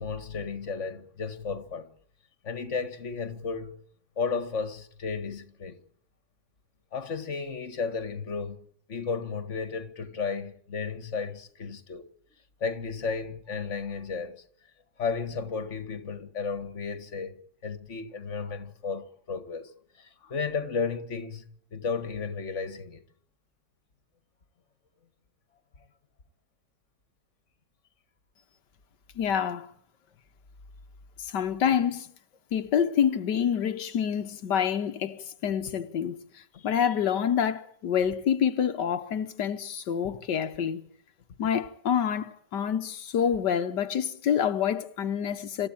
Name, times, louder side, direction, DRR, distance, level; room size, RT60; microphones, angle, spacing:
voice 1, 0.0-1.9 2.4-3.8 4.2-5.8 6.9-8.6 8.9-12.1 12.6-14.4 15.0-19.7 20.0-21.5 21.7-23.0 36.5-36.6 40.0-40.1, left 5 dB, 45° left, 2.1 m, -33 dB
voice 2, 29.2-29.7 31.2-32.1 32.5-40.8 41.4-45.7, left 8 dB, 85° left, 1.7 m, -27 dB
26.5 x 14.5 x 8.9 m
omnidirectional pair, 1.8 m